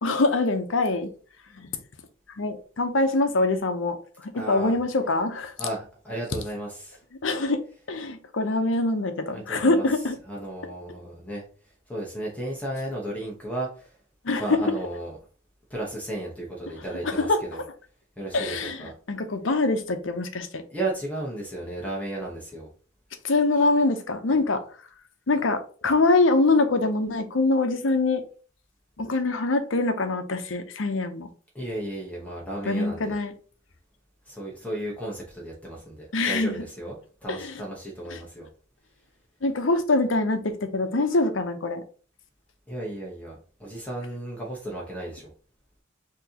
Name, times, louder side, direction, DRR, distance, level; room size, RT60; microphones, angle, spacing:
voice 1, 0.0-1.1 1.5-1.7 2.4-4.0 4.2-5.5 7.2-7.6 7.9-10.2 14.2-14.7 17.0-17.4 18.3-20.6 23.2-24.6 25.3-28.2 29.0-31.3 32.7-33.3 36.1-36.6 37.3-37.6 38.1-38.2 39.4-41.8, left 3 dB, 75° left, 0.7 m, -24 dB
voice 2, 4.3-4.8 5.6-7.0 9.3-11.4 11.9-13.9 14.4-15.2 15.7-17.6 18.2-18.9 20.7-22.7 31.5-33.2 34.3-38.5 42.7-45.3, right 1 dB, 10° left, 1.1 m, -34 dB
6.1 x 2.9 x 2.9 m
head